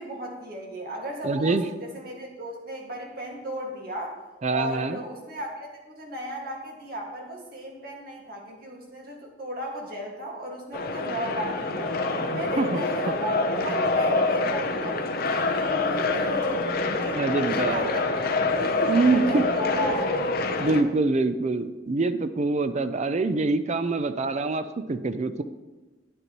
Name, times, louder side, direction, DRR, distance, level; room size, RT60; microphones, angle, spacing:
voice 1, 0.0-4.1 4.5-11.9 12.3-18.3 18.8-20.2, right 1 dB, 55° right, -1 dB, 1.8 m, -35 dB
voice 2, 1.2-1.6 4.4-5.0 12.3-12.8 17.1-18.2 18.9-19.5 20.6-25.4, right 3 dB, 40° right, 11 dB, 0.5 m, -25 dB
sound 1, 10.7-20.8, left 3 dB, 55° left, 0.7 m, -26 dB
9.7 x 9.4 x 3.0 m, 1.2 s
head